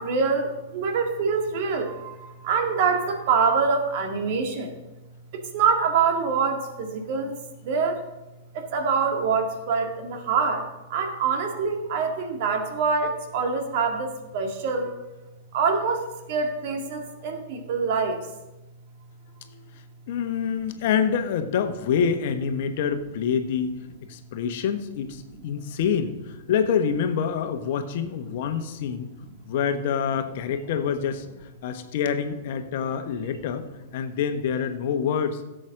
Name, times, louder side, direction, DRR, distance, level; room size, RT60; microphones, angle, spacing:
voice 1, 0.0-4.7 5.3-7.3 7.6-8.0 8.5-14.9 15.5-18.2, right 5 dB, 50° right, 4 dB, 2.0 m, -25 dB
voice 2, 19.4-23.8 24.1-29.1 29.4-35.4, left 7 dB, 55° left, 8 dB, 1.1 m, -27 dB
16.0 x 7.8 x 3.8 m, 1.0 s
figure-of-eight pair, 100°, 0 cm